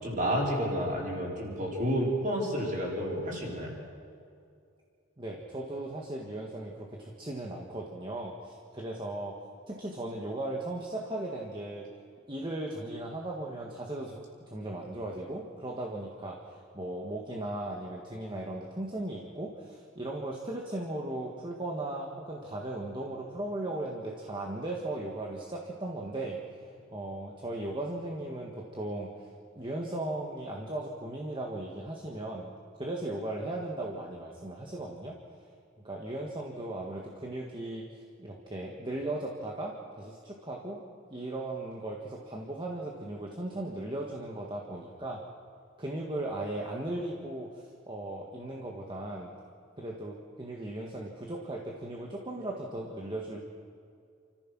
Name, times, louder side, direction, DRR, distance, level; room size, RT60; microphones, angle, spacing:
voice 1, 0.0-3.7, equal, 40° right, -3 dB, 5.2 m, -30 dB
voice 2, 5.2-9.4 9.7-11.9 12.3-35.2 35.8-40.8 41.1-45.2 45.8-49.3 49.8-53.4, right 1 dB, 25° right, -1 dB, 1.7 m, -37 dB
29.0 x 14.5 x 6.2 m, 2.4 s
head